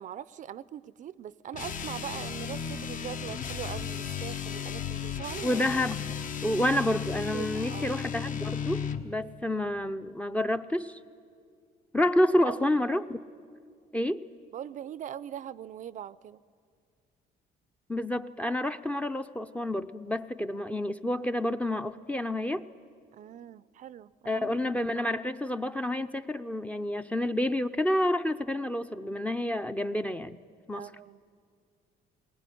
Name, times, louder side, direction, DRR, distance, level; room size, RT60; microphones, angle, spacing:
voice 1, 0.0-5.6 7.3-7.9 12.4-12.7 14.5-16.4 23.1-24.6 30.7-31.2, right 10 dB, 50° right, 18 dB, 0.5 m, -41 dB
sound 1, 1.5-9.1, left 7 dB, 50° left, 1.2 m, -35 dB
voice 2, 5.4-6.1 6.4-11.0 11.9-13.2 13.9-14.2 17.9-22.6 24.3-30.4 30.7-30.9, left 1 dB, 10° left, 9 dB, 0.6 m, -29 dB
20.0 x 19.5 x 10.0 m, 2.2 s
cardioid pair, 110°, 17 cm